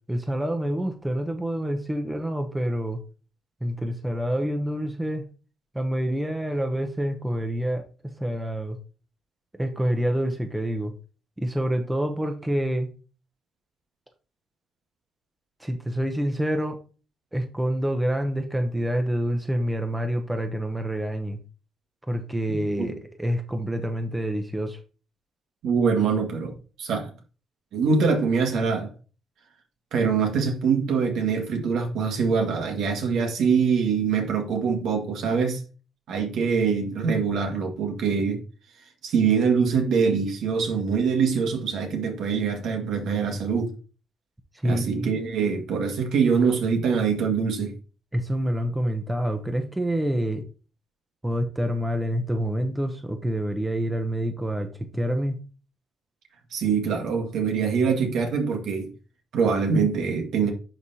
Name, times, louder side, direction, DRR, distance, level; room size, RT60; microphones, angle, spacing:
voice 1, 0.1-3.0 3.6-5.2 5.7-8.8 9.5-10.9 11.4-12.9 15.6-16.8 17.3-21.4 22.1-24.8 44.6-45.1 48.1-50.4 51.2-55.4, equal, 10° right, 0.9 m, -27 dB
voice 2, 22.5-22.9 25.6-27.1 27.7-28.9 29.9-35.6 36.1-38.4 39.0-43.7 44.6-47.7 56.5-58.9 59.3-60.5, right 5 dB, 75° right, 1.8 m, -24 dB
11.0 x 3.6 x 2.8 m
cardioid pair, 90°, 0 cm